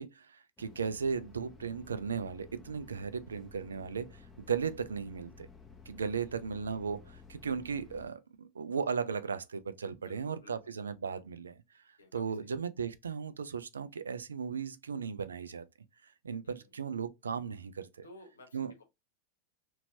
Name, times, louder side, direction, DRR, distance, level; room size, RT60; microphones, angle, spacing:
voice 1, 0.0-5.5 5.9-11.6 12.1-15.6 16.0-18.1 18.5-18.7, right 6 dB, 85° right, 0.3 m, -36 dB
sound 1, 0.6-8.1, left 5 dB, 10° left, 0.8 m, -54 dB
voice 2, 6.0-6.6 9.9-10.5 12.0-12.6 16.4-16.7 18.0-18.8, left 2 dB, 85° left, 0.9 m, -56 dB
2.9 x 2.7 x 2.6 m
hypercardioid pair, 90°, 0 cm